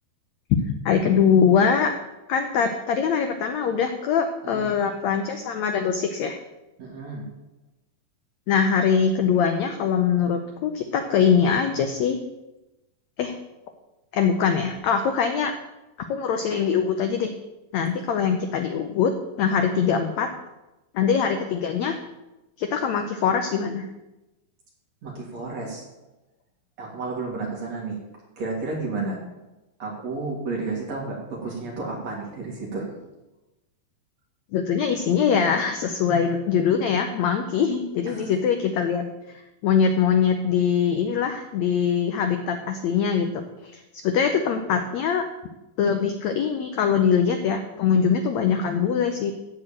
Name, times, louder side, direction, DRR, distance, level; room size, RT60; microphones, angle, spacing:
voice 1, 0.8-1.9 2.3-6.4 8.5-12.2 13.2-13.4 14.1-15.5 16.1-17.3 17.7-19.1 19.4-20.3 20.9-22.0 22.6-23.9 34.5-45.2 45.8-49.3, left 7 dB, 80° left, 6 dB, 1.6 m, -23 dB
voice 2, 6.8-7.3 25.0-25.9 26.8-28.0 28.4-29.2 29.8-32.9 38.1-38.3, right 3 dB, 50° right, -2 dB, 4.0 m, -31 dB
14.5 x 4.9 x 8.7 m, 1.0 s
omnidirectional pair, 4.2 m